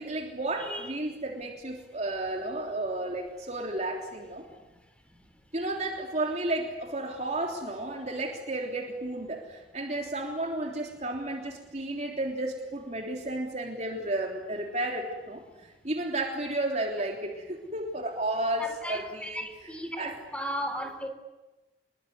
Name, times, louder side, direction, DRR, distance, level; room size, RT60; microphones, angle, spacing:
voice 1, 0.0-4.4 5.5-20.2, right 2 dB, 40° right, 1 dB, 3.4 m, -33 dB
voice 2, 0.6-0.9 18.6-21.1, equal, 5° left, 6 dB, 3.8 m, -36 dB
27.5 x 22.5 x 9.6 m, 1.1 s
head